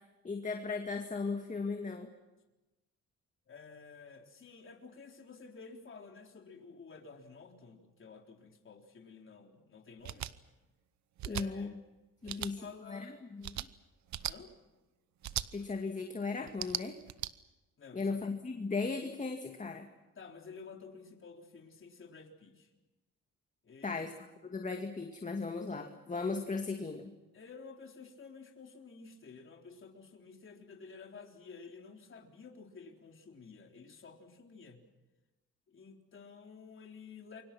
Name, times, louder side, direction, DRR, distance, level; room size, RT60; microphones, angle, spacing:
voice 1, 0.2-2.1 11.2-11.7 12.2-12.6 12.9-13.7 15.5-17.0 17.9-19.9 23.8-24.1 24.4-27.1, left 4 dB, 25° left, 4 dB, 2.3 m, -37 dB
voice 2, 3.5-10.3 11.2-11.8 12.2-13.2 14.3-14.5 17.8-18.1 20.2-22.7 23.6-24.0 27.3-34.8 35.7-37.4, left 5 dB, 40° left, 2 dB, 3.9 m, -52 dB
sound 1, 10.0-10.3 11.2-11.5 12.3-12.5 13.4-13.7 14.1-14.3 15.2-15.5 16.5-17.3, right 12 dB, 65° right, 1.0 m, -37 dB
28.5 x 24.0 x 6.1 m, 1.1 s
cardioid pair, 90°, 30 cm